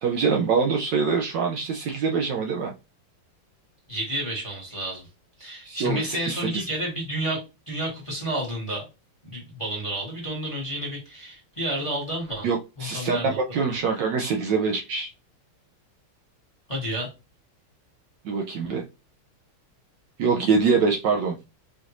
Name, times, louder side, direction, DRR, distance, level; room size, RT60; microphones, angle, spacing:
voice 1, 0.0-2.7 5.6-6.6 12.4-15.1 18.2-18.8 20.2-21.4, right 5 dB, 70° right, 2 dB, 1.1 m, -24 dB
voice 2, 3.9-5.1 5.4-7.4 7.7-8.9 9.2-12.5 12.8-13.4 16.7-17.1, right 1 dB, 20° left, -2 dB, 1.0 m, -30 dB
5.0 x 2.5 x 2.9 m, 0.27 s
omnidirectional pair, 2.3 m